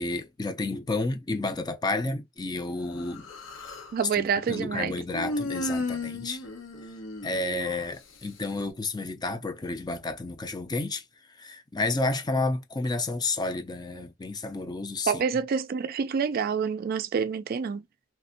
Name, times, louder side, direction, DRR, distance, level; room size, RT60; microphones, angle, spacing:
voice 1, 0.0-3.3 4.2-6.4 7.2-11.0 11.4-15.1, left 2 dB, 20° left, 0.5 m, -31 dB
Human voice, 3.0-4.0 5.1-7.9, left 2 dB, 80° left, 0.9 m, -34 dB
voice 2, 3.9-4.9 15.1-17.8, right 6 dB, 50° right, 0.3 m, -27 dB
3.2 x 2.6 x 2.6 m
head